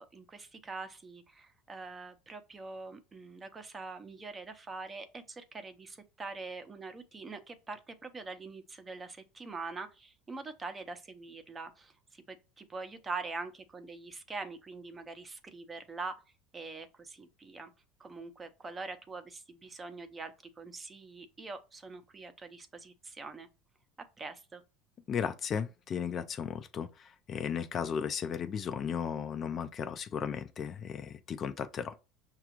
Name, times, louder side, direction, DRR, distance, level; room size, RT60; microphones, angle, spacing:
voice 1, 0.0-16.1 16.5-17.7 18.0-23.5 24.2-24.6, right 3 dB, 20° right, 0.6 m, -44 dB
voice 2, 25.1-31.9, left 7 dB, 35° left, 0.4 m, -35 dB
5.8 x 2.4 x 2.9 m
supercardioid pair, 125°, 0 cm